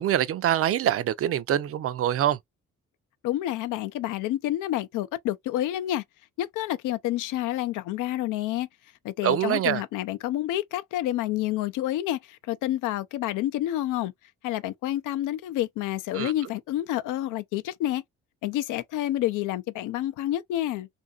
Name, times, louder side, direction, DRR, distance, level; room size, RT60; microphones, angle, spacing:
voice 1, 0.0-2.4 9.2-9.8 16.1-16.3, right 11 dB, 50° right, 0.4 m, -24 dB
voice 2, 3.2-6.0 6.4-8.7 9.0-14.1 14.4-18.0 18.4-20.9, left 14 dB, 85° left, 0.5 m, -29 dB
2.7 x 2.5 x 2.3 m
cardioid pair, 90°, 30 cm